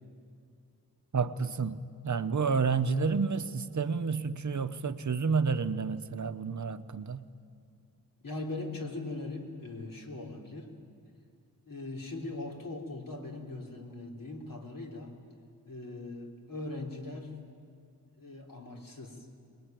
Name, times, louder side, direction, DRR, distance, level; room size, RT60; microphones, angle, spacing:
voice 1, 1.1-7.3, right 5 dB, 50° right, 10 dB, 0.8 m, -30 dB
voice 2, 8.2-10.7 11.7-15.1 15.7-17.4 18.2-19.3, left 2 dB, 60° left, 0 dB, 3.6 m, -40 dB
24.5 x 20.5 x 9.1 m, 2.4 s
wide cardioid pair, 95°, 38 cm